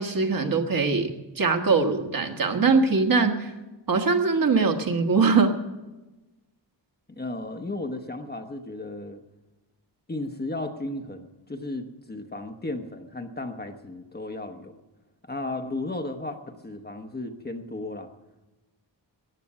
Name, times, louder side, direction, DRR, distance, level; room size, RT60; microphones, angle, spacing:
voice 1, 0.0-3.5 3.9-5.5, right 4 dB, 50° right, 4 dB, 1.4 m, -22 dB
voice 2, 7.1-9.2 10.1-14.7 15.2-18.1, left 2 dB, 20° left, 5 dB, 0.9 m, -34 dB
14.5 x 9.2 x 8.5 m, 1.1 s
wide cardioid pair, 155°, 45 cm